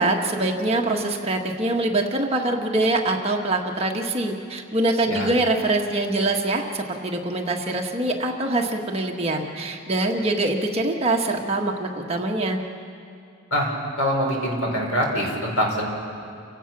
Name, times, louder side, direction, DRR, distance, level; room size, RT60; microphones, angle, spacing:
voice 1, 0.0-12.6, right 2 dB, 30° right, 1 dB, 1.5 m, -24 dB
voice 2, 13.5-15.9, equal, 80° left, 0 dB, 5.1 m, -24 dB
29.5 x 16.5 x 6.1 m, 2.4 s
head